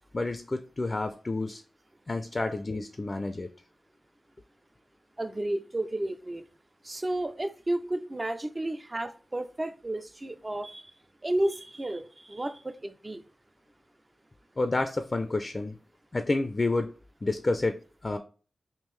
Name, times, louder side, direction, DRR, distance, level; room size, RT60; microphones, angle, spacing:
voice 1, 0.1-1.6 2.1-3.5 14.6-15.8 16.1-16.9 17.2-18.2, left 2 dB, 40° left, 0.4 m, -29 dB
voice 2, 5.2-6.4 6.8-10.9 11.2-13.2, right 1 dB, 30° right, 0.4 m, -32 dB
3.6 x 2.5 x 3.1 m
cardioid pair, 50°, 0 cm